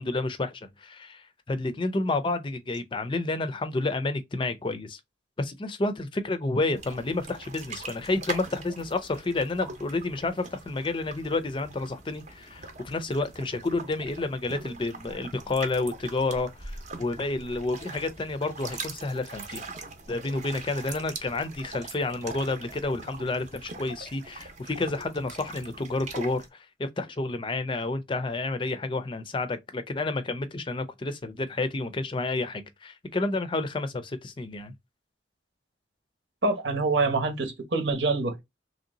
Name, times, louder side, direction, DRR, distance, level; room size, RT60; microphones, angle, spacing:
voice 1, 0.0-5.0 5.4-19.6 20.1-34.7, left 2 dB, 25° left, 0.4 m, -30 dB
water on rocks calm manitoulin, 6.7-26.5, right 3 dB, 40° right, 0.7 m, -42 dB
voice 2, 36.4-38.4, right 3 dB, 80° right, 1.1 m, -26 dB
3.2 x 2.7 x 3.9 m
head